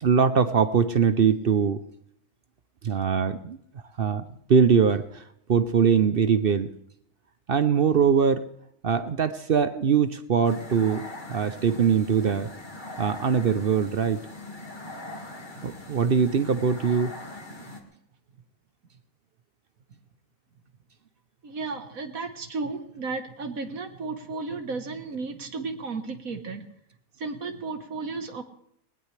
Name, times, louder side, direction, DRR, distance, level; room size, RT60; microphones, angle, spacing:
voice 1, 0.0-1.8 2.8-3.6 4.0-4.2 4.5-5.2 5.5-6.7 7.5-8.4 8.8-12.5 13.0-14.2 15.6-17.1, right 6 dB, 50° right, 12 dB, 0.7 m, -22 dB
sound 1, 10.4-17.8, left 2 dB, 30° left, 2.1 m, -41 dB
voice 2, 21.4-26.7 27.2-28.4, right 4 dB, 70° right, 7 dB, 1.8 m, -34 dB
20.5 x 19.5 x 3.3 m, 0.72 s
omnidirectional pair, 1.6 m